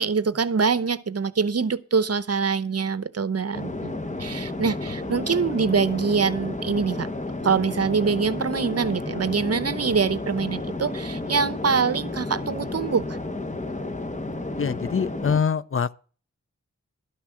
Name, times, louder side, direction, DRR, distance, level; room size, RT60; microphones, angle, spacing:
voice 1, 0.0-3.9 4.2-7.1 7.4-13.2, right 5 dB, 55° right, 0.8 m, -24 dB
sound 1, 3.5-15.4, left 2 dB, 25° left, 1.1 m, -32 dB
voice 2, 14.6-15.9, left 6 dB, 50° left, 0.5 m, -24 dB
12.5 x 6.1 x 7.2 m
wide cardioid pair, 95°, 29 cm